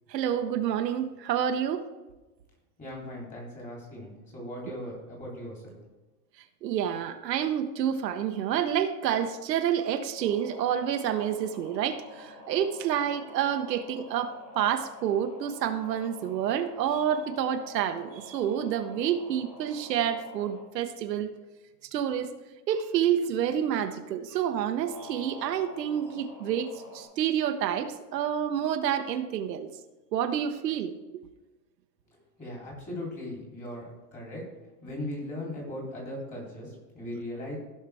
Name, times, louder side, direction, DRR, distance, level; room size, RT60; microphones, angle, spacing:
voice 1, 0.1-1.8 6.6-21.3 21.9-22.3 22.7-29.7 30.1-31.2, right 9 dB, 85° right, 7 dB, 1.0 m, -28 dB
voice 2, 2.8-5.8 32.4-34.4 34.8-37.6, left 1 dB, 15° left, -3 dB, 3.3 m, -38 dB
sound 1, 10.2-20.6 24.8-27.0, left 2 dB, 45° left, 3.6 m, -48 dB
15.5 x 5.7 x 3.4 m, 1.1 s
supercardioid pair, 150°, 49 cm